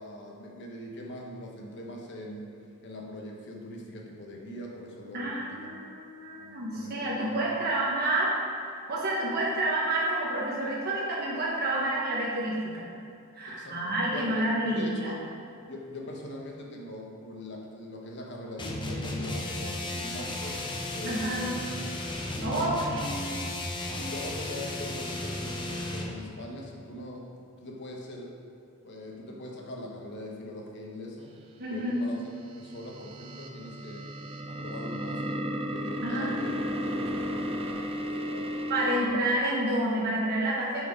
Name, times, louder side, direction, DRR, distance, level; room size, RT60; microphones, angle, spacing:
voice 1, 0.0-2.6 2.8-5.7 6.4-7.4 13.5-15.3 15.6-21.8 22.5-23.2 23.9-28.5 28.8-31.4 31.7-32.2 32.5-34.2 34.5-38.7 39.1-39.2, left 1 dB, 55° left, 0 dB, 1.0 m, -42 dB
voice 2, 5.1-8.3 8.6-12.9 13.3-15.1 21.0-21.5 22.4-22.8 23.1-23.3 31.6-32.1 36.0-36.9 38.7-40.9, right 1 dB, 45° right, -6 dB, 1.1 m, -29 dB
sound 1, 18.6-26.2, left 1 dB, 20° left, 0.7 m, -34 dB
sound 2, 32.5-39.1, equal, 25° right, 0.5 m, -34 dB
6.8 x 4.7 x 5.0 m, 2.6 s
head